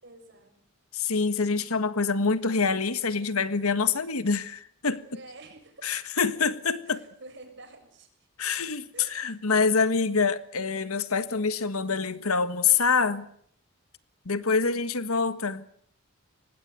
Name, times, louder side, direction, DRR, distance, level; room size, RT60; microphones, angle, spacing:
voice 1, 0.0-0.7 5.1-6.1 6.9-8.1 8.9-9.4, right 2 dB, 55° right, 7.0 m, -49 dB
voice 2, 0.9-5.0 5.8-7.0 8.4-13.3 14.2-15.7, left 5 dB, 85° left, 1.6 m, -26 dB
25.0 x 20.0 x 9.1 m
head